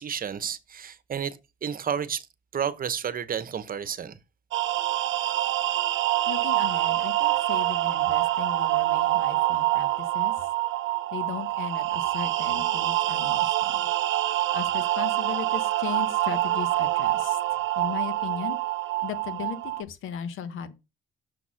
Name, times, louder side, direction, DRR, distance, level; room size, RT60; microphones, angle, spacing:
voice 1, 0.0-2.3 2.5-4.2, right 8 dB, 45° right, 0.9 m, -31 dB
sound 1, 4.5-19.8, right 16 dB, 75° right, 0.7 m, -26 dB
voice 2, 6.3-10.5 11.1-13.8 14.5-18.6 19.0-20.7, left 8 dB, 85° left, 1.1 m, -37 dB
6.6 x 4.1 x 6.3 m
cardioid pair, 90°, 20 cm